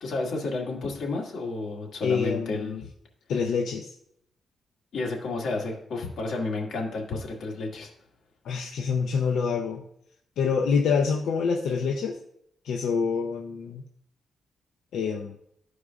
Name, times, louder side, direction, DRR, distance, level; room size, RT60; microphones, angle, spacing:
voice 1, 0.0-2.8 4.9-7.9, left 3 dB, 65° left, -1 dB, 1.9 m, -31 dB
voice 2, 2.0-2.8 3.3-3.9 8.4-9.8 10.4-12.2 12.6-13.8 14.9-15.4, left 5 dB, 90° left, 1 dB, 0.6 m, -26 dB
13.5 x 4.8 x 2.4 m, 0.72 s
cardioid pair, 130°, 0 cm